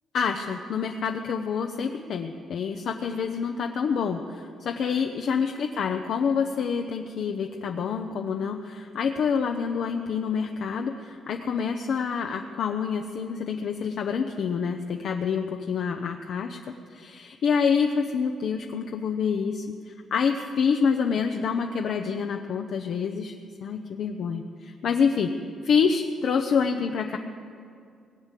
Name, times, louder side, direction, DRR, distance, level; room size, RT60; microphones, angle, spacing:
voice 1, 0.1-16.6 16.9-23.3 23.6-25.3 25.6-27.2, left 6 dB, 65° left, 4 dB, 0.7 m, -27 dB
19.0 x 8.1 x 7.4 m, 2.4 s
cardioid pair, 90°, 0 cm